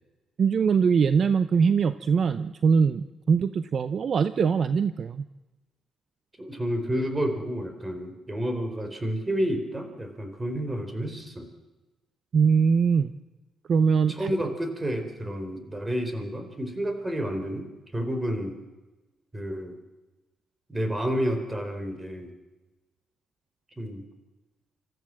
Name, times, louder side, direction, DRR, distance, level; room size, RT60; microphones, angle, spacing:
voice 1, 0.4-5.2 12.3-13.1 13.7-14.4, right 6 dB, 50° right, 12 dB, 0.7 m, -22 dB
voice 2, 6.4-11.5 14.1-18.6 19.3-19.8 20.7-22.3 23.8-24.0, equal, 15° right, 7 dB, 4.0 m, -30 dB
25.5 x 14.5 x 7.6 m, 1.1 s
cardioid pair, 90°, 0 cm